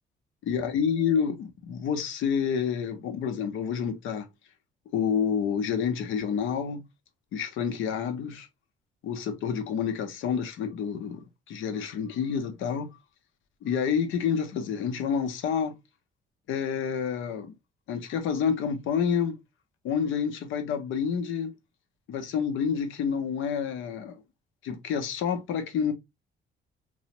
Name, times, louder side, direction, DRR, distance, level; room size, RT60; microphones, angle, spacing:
voice 1, 0.5-4.3 4.9-6.8 7.3-8.5 9.0-11.2 11.5-12.9 13.6-15.7 16.5-17.5 17.9-19.4 19.8-21.5 22.1-24.2 24.6-25.9, left 7 dB, 80° left, 0.7 m, -28 dB
3.0 x 2.0 x 2.8 m
cardioid pair, 90°, 20 cm